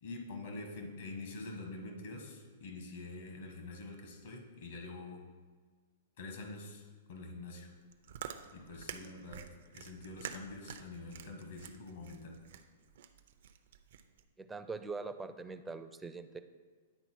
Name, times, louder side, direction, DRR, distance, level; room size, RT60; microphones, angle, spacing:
voice 1, 0.0-5.2 6.2-7.7 8.5-9.4 9.7-12.4, left 2 dB, 70° left, 3 dB, 1.4 m, -46 dB
Chewing mastication, 7.8-14.2, right 9 dB, 65° right, 0.5 m, -48 dB
voice 2, 14.4-16.4, right 4 dB, 10° right, 9 dB, 0.4 m, -42 dB
9.7 x 3.8 x 4.5 m, 1.5 s
hypercardioid pair, 130°, 0 cm